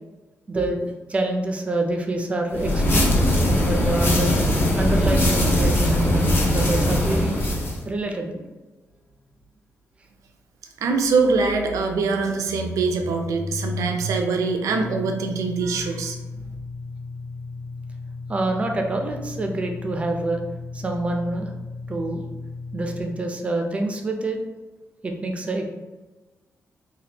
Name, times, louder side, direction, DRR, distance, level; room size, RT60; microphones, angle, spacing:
voice 1, 0.5-3.1 3.6-4.5 4.8-7.4 7.8-8.4 18.3-20.4 20.7-21.5 21.9-22.2 22.7-24.4 25.0-25.7, right 2 dB, 25° right, 3 dB, 0.4 m, -26 dB
sound 1, 2.5-7.8, left 1 dB, 40° left, 0.6 m, -20 dB
sound 2, 9.1-9.2 9.4-9.5 11.0-23.0, left 2 dB, 20° left, 1.1 m, -35 dB
voice 2, 10.8-16.2, right 4 dB, 85° right, 4 dB, 0.4 m, -23 dB
3.4 x 2.2 x 2.8 m, 1.2 s
wide cardioid pair, 145°, 5 cm